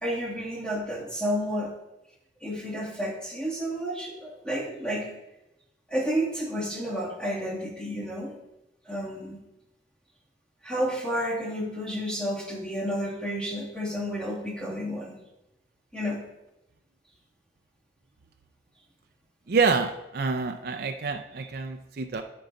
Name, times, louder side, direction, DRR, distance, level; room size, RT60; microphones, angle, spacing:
voice 1, 0.0-1.7 2.4-5.1 5.9-8.4 8.9-9.4 10.6-15.2 15.9-16.2, equal, 5° left, -4 dB, 2.2 m, -31 dB
voice 2, 19.5-22.2, right 4 dB, 55° right, 5 dB, 0.5 m, -27 dB
13.5 x 4.6 x 4.0 m, 0.91 s
head